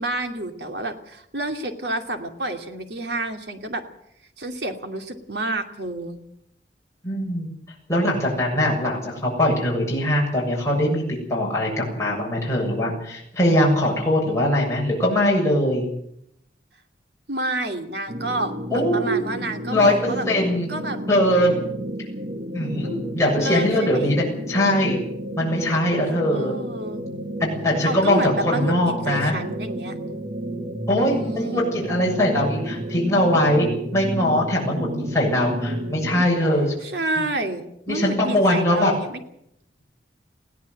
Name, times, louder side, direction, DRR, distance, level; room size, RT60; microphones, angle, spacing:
voice 1, 0.0-3.8 4.4-6.2 17.3-20.3 20.7-21.0 23.4-24.1 26.3-27.0 27.8-30.0 31.0-31.7 36.8-39.2, right 2 dB, 65° right, 5 dB, 2.7 m, -29 dB
voice 2, 7.0-7.5 7.9-15.9 18.7-19.2 19.7-20.7 21.1-21.5 22.5-25.0 25.4-26.6 27.4-29.3 30.9-36.7 37.9-39.0, left 1 dB, 15° left, -4 dB, 7.2 m, -21 dB
sound 1, 18.1-36.3, equal, 50° right, 1.7 m, -32 dB
20.5 x 17.0 x 8.0 m, 0.74 s
head